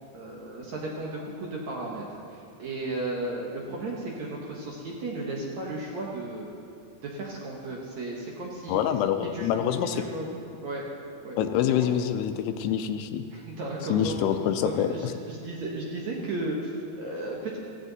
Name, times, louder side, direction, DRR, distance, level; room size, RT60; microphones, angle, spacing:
voice 1, 0.1-6.5 7.0-8.8 9.3-9.5 9.9-10.3 10.6-10.9 11.2-11.4 11.7-11.9 13.3-14.2 14.6-17.6, right 2 dB, 60° right, -3 dB, 2.1 m, -34 dB
voice 2, 8.7-10.0 11.4-13.2 13.9-15.1, left 9 dB, 85° left, 8 dB, 2.7 m, -26 dB
16.0 x 16.0 x 4.1 m, 2.6 s
omnidirectional pair, 4.8 m